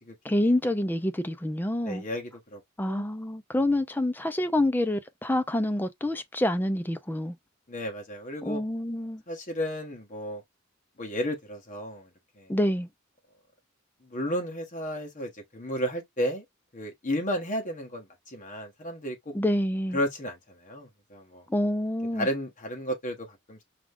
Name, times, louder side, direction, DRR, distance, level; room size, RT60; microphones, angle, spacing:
voice 1, 0.2-2.0 2.8-7.3 8.4-9.2 12.5-12.9 19.3-20.0 21.5-22.3, left 1 dB, 10° left, 0.4 m, -27 dB
voice 2, 1.8-2.6 2.9-3.0 7.7-8.6 9.3-10.4 11.0-12.1 12.4-12.5 14.0-16.4 16.7-19.3 19.9-21.4 22.2-23.6, equal, 40° left, 1.3 m, -33 dB
4.9 x 2.3 x 3.7 m
head